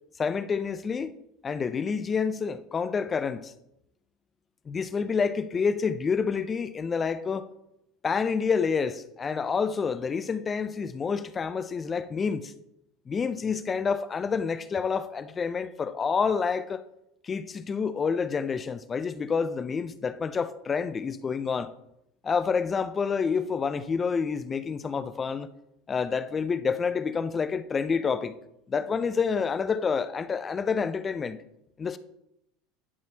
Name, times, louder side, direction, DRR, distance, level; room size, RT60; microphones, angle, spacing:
voice 1, 0.2-1.2 1.4-3.5 4.7-7.5 8.0-12.5 13.1-16.8 17.2-21.7 22.2-25.5 25.9-28.4 28.7-31.4 31.8-32.0, left 5 dB, 25° left, 0.5 m, -28 dB
11.0 x 4.4 x 2.8 m
supercardioid pair, 105°, 0 cm